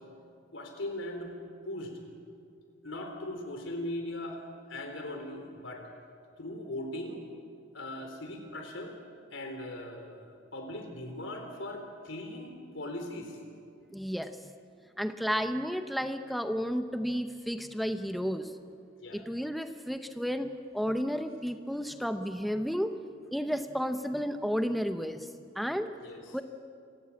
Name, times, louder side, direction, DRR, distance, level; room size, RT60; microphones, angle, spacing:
voice 1, 0.5-1.3 1.6-2.0 2.8-4.4 4.7-5.9 6.4-7.2 7.7-9.0 9.3-13.4 19.0-19.2 26.0-26.4, left 1 dB, 90° left, 4 dB, 3.9 m, -39 dB
voice 2, 13.9-14.3 15.0-18.5 19.1-23.0 23.3-25.3 25.6-25.9 26.3-26.4, equal, ahead, 8 dB, 0.8 m, -32 dB
27.0 x 16.0 x 8.5 m, 2.3 s
head